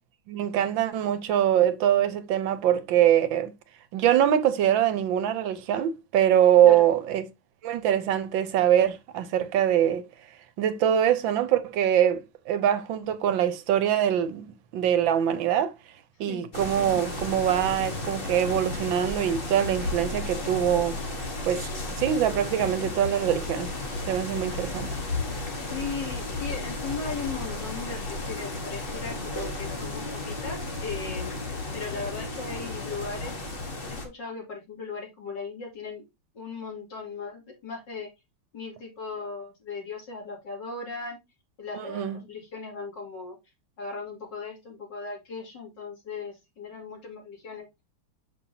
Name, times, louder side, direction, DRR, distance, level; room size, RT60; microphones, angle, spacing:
voice 1, 0.3-3.5 3.9-7.3 7.6-10.0 10.6-15.7 16.2-21.0 21.4-21.7 22.0-23.7 24.1-24.9 41.7-42.2, right 10 dB, 75° right, 1.5 m, -23 dB
sound 1, 16.5-34.1, left 2 dB, 30° left, 1.3 m, -33 dB
voice 2, 25.7-31.4 31.7-33.3 34.1-36.0 36.3-38.1 38.5-41.2 41.6-43.4 43.8-47.7, left 4 dB, 65° left, 3.3 m, -37 dB
7.0 x 5.7 x 2.8 m
omnidirectional pair, 2.1 m